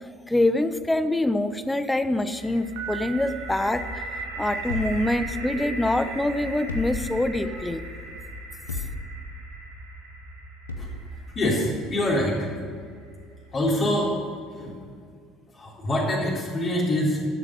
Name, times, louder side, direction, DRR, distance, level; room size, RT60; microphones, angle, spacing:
voice 1, 0.3-4.0 4.4-7.8, left 1 dB, 10° left, 11 dB, 0.8 m, -25 dB
sound 1, 2.3-14.1, right 1 dB, 85° right, 2.5 m, -38 dB
Piano, 2.8-4.9, right 11 dB, 70° right, 1.5 m, -40 dB
sound 2, 4.7-5.8 6.7-7.6 8.7-9.4 10.7-11.2, left 3 dB, 90° left, 0.9 m, -35 dB
voice 2, 11.3-12.4 13.5-14.1 14.6-14.8 15.5-17.2, left 1 dB, 35° left, -5 dB, 3.7 m, -25 dB
12.0 x 7.2 x 7.7 m, 2.2 s
hypercardioid pair, 65°, 0 cm